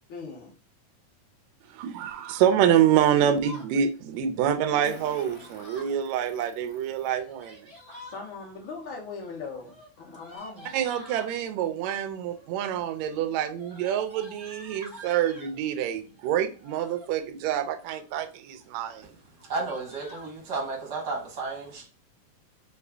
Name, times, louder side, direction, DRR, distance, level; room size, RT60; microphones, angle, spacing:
voice 1, 0.1-0.5 8.0-10.7, left 4 dB, 75° left, 1.1 m, -40 dB
voice 2, 1.7-7.6 10.7-19.1, right 9 dB, 85° right, 1.6 m, -26 dB
Fart, 2.1-2.2 4.8-7.1 7.8-7.9 9.1-9.2 9.6-9.7 10.1-10.4, left 2 dB, 40° left, 0.9 m, -48 dB
Yell, 2.9-3.7 5.1-6.0 7.1-8.2 9.5-11.3 12.2-12.6 12.9-15.6 16.5-17.1 17.6-18.2 18.5-18.7 18.9-19.1 19.4-20.3, left 1 dB, 25° right, 0.8 m, -48 dB
voice 3, 19.5-21.8, right 3 dB, 65° right, 1.0 m, -32 dB
5.3 x 2.4 x 3.4 m
omnidirectional pair, 4.0 m